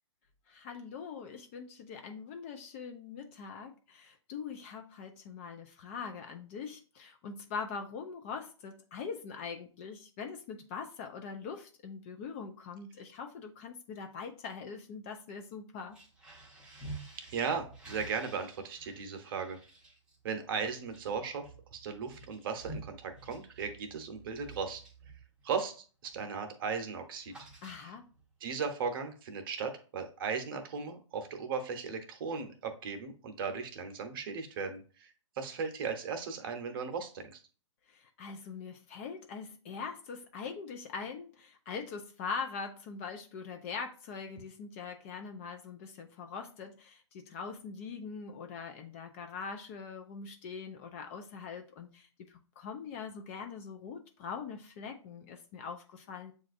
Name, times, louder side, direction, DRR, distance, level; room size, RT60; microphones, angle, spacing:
voice 1, 0.5-16.0 27.6-28.1 37.9-56.3, left 5 dB, 25° left, 5 dB, 0.3 m, -42 dB
sound 1, 15.8-25.8 26.1-26.4 26.6-28.2, right 3 dB, 5° right, 0.8 m, -50 dB
voice 2, 17.2-19.6 20.2-24.8 25.4-27.5 27.8-27.9 28.4-37.4, right 5 dB, 45° right, 6 dB, 0.8 m, -37 dB
7.3 x 2.5 x 2.5 m, 0.38 s
hypercardioid pair, 140°, 16 cm